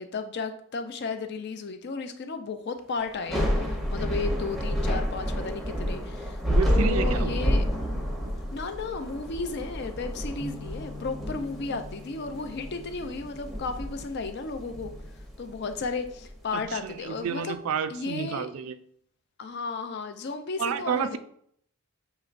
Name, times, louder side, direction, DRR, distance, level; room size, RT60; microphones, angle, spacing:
voice 1, 0.0-6.4 6.6-7.6 8.5-14.9 15.4-17.6 17.9-18.5 19.4-21.2, left 4 dB, 50° left, 7 dB, 0.4 m, -34 dB
Thunder / Rain, 3.1-16.3, equal, ahead, 0.7 m, -29 dB
voice 2, 6.5-7.4 16.5-18.8 20.6-21.2, right 7 dB, 70° right, 10 dB, 0.3 m, -30 dB
sound 1, 10.4-14.4, left 4 dB, 25° left, 1.1 m, -46 dB
6.4 x 2.9 x 2.5 m, 0.66 s
head